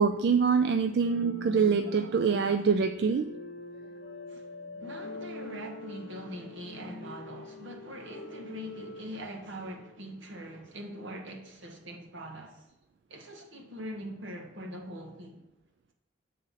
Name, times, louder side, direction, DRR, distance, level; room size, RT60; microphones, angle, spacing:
voice 1, 0.0-3.2, right 5 dB, 60° right, 0.3 m, -25 dB
sound 1, 1.0-10.0, left 1 dB, 90° left, 0.7 m, -44 dB
voice 2, 4.8-12.6 13.1-15.4, equal, 80° right, 1.2 m, -42 dB
7.5 x 3.8 x 5.6 m
head